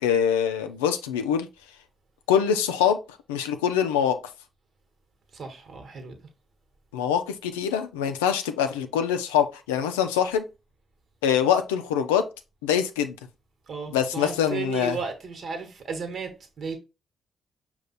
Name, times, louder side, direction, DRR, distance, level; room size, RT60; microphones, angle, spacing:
voice 1, 0.0-1.5 2.3-3.0 3.3-4.2 6.9-10.4 11.2-12.3 12.6-13.2 13.9-15.0, left 8 dB, 85° left, 0.4 m, -24 dB
voice 2, 5.3-6.2 13.7-16.8, right 5 dB, 60° right, 1.2 m, -34 dB
5.3 x 2.3 x 4.0 m
hypercardioid pair, 40°, 0 cm